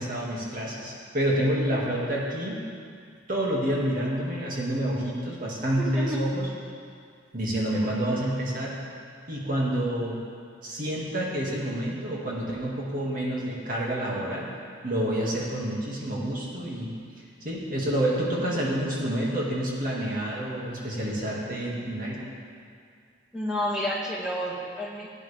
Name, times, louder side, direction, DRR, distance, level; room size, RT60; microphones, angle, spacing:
voice 1, 0.0-2.6 3.3-6.5 7.3-8.7 9.3-10.2 10.6-14.5 14.8-16.9 17.4-22.3, right 1 dB, 45° right, -4 dB, 2.2 m, -28 dB
voice 2, 5.8-6.2 23.3-25.1, equal, 5° right, -6 dB, 2.0 m, -30 dB
16.5 x 9.7 x 3.5 m, 2.2 s
head